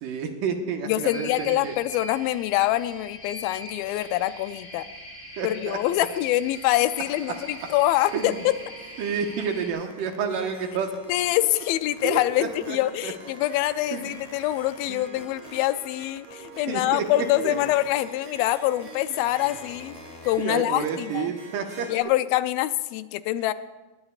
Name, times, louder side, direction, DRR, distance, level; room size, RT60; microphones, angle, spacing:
voice 1, 0.0-1.8 5.4-6.1 8.1-8.3 9.0-10.9 12.0-12.8 13.0-13.1 13.9-14.1 14.9-15.0 16.7-17.0 17.4-17.6 20.4-21.9, right 6 dB, 70° right, 4 dB, 2.7 m, -30 dB
voice 2, 0.9-4.9 5.4-8.3 11.1-19.9 20.3-21.3 21.9-23.5, left 15 dB, 85° left, 13 dB, 2.4 m, -25 dB
sound 1, 1.1-9.7, left 1 dB, 40° left, 4.1 m, -42 dB
Harp, 6.5-22.0, right 4 dB, 30° right, 6.4 m, -46 dB
sound 2, 9.9-20.5, left 7 dB, 65° left, 1.8 m, -48 dB
20.0 x 19.5 x 2.4 m, 1.2 s
omnidirectional pair, 4.2 m